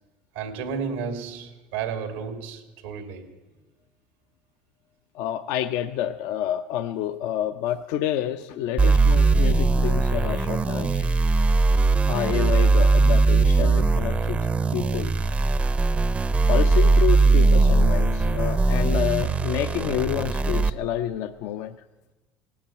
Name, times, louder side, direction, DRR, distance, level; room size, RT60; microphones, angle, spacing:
voice 1, 0.3-3.3, right 6 dB, 90° right, 2.2 m, -32 dB
voice 2, 5.1-11.1 12.1-14.4 14.7-15.1 16.5-21.7, left 11 dB, 70° left, 0.6 m, -28 dB
sound 1, 8.8-20.7, right 3 dB, 25° right, 0.6 m, -20 dB
17.5 x 8.7 x 9.0 m
supercardioid pair, 95°, 5 cm